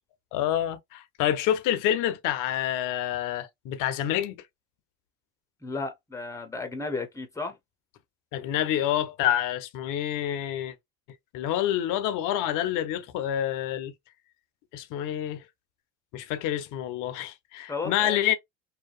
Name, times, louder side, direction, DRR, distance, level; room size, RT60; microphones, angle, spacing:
voice 1, 0.3-4.3 8.3-10.7 11.3-13.9 14.7-15.4 16.1-18.3, left 11 dB, 55° left, 0.6 m, -27 dB
voice 2, 5.6-7.6 17.7-18.3, left 3 dB, 10° left, 0.8 m, -34 dB
2.7 x 2.2 x 2.3 m
supercardioid pair, 90°, 37 cm